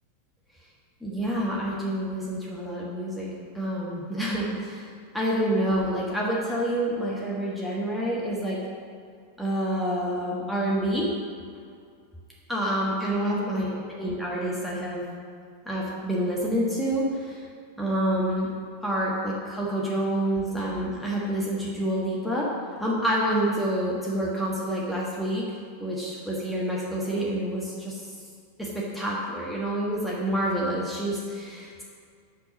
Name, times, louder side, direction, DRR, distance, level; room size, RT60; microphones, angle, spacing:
voice 1, 1.0-8.6 9.4-11.1 12.5-15.0 15.6-17.5 17.8-18.5 18.8-22.5 22.8-25.4 25.8-28.1 28.6-31.8, right 1 dB, 5° left, -5 dB, 1.4 m, -28 dB
6.1 x 6.0 x 7.1 m, 2.2 s
figure-of-eight pair, 90°, 0 cm